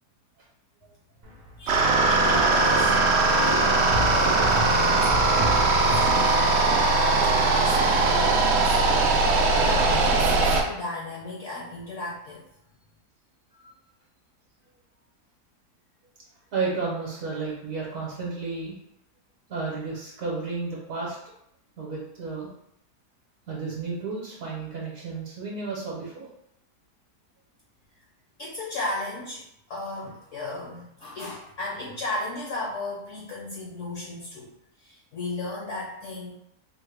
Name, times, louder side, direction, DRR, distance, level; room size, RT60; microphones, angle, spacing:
sound 1, 1.2-1.7 3.9-6.6, left 1 dB, 45° right, 0.5 m, -31 dB
voice 1, 1.6-2.9 3.3-8.8 9.3-12.5 28.4-34.5 34.8-36.3, left 2 dB, 65° left, -4 dB, 0.8 m, -35 dB
sound 2, 1.7-10.6, right 3 dB, 90° right, 0.5 m, -20 dB
voice 2, 16.5-18.8 19.5-21.2 21.8-22.5 23.5-26.3, right 4 dB, 60° right, -4 dB, 1.1 m, -32 dB
3.8 x 2.1 x 3.3 m, 0.77 s
omnidirectional pair, 1.8 m